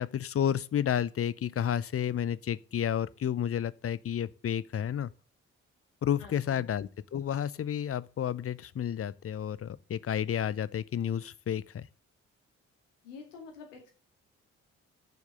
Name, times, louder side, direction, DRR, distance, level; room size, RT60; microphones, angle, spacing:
voice 1, 0.0-5.1 6.0-11.9, left 9 dB, 40° left, 0.6 m, -31 dB
voice 2, 6.2-6.7 13.0-13.9, left 5 dB, 90° left, 2.2 m, -48 dB
7.3 x 5.9 x 6.5 m
hypercardioid pair, 40°, 36 cm